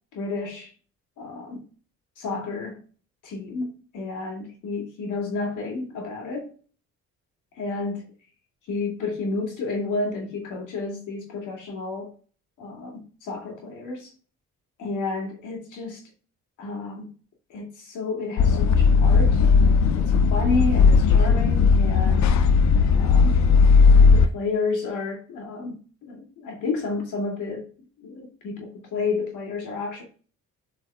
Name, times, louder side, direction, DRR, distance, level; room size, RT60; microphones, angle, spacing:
voice 1, 0.1-0.7 1.2-1.6 2.2-2.8 3.2-6.5 7.5-8.1 8.7-12.1 12.6-14.1 14.8-16.0 16.6-17.1 17.5-19.4 19.9-22.3 22.9-23.4 23.8-27.7 28.0-30.0, left 3 dB, 85° left, 2.7 m, -31 dB
sound 1, 18.4-24.3, left 5 dB, 65° left, 0.6 m, -17 dB
8.6 x 4.9 x 2.4 m
cardioid pair, 90°, 30 cm